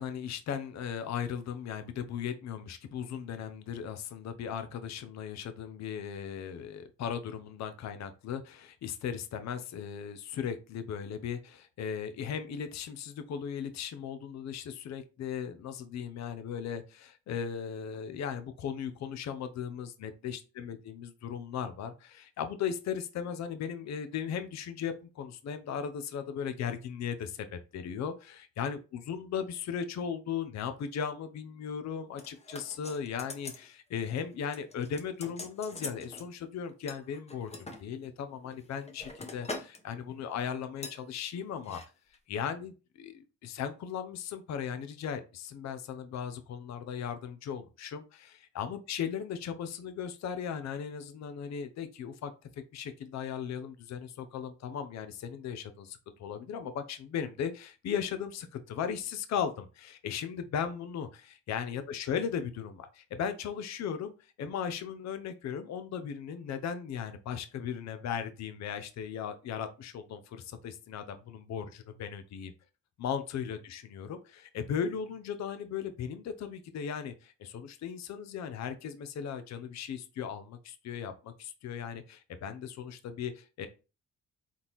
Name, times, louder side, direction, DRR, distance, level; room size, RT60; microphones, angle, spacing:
voice 1, 0.0-28.8 29.1-41.8 42.3-72.5 73.0-83.7, left 7 dB, 60° left, 9 dB, 0.7 m, -37 dB
sound 1, 32.2-33.7 34.0-34.2 34.5-36.3 36.9-37.8 38.4-39.8 40.1-40.3 40.8-41.0 41.6-41.9 42.1-42.2, left 2 dB, 20° left, 1.0 m, -43 dB
4.1 x 3.6 x 3.0 m, 0.32 s
cardioid pair, 90°, 30 cm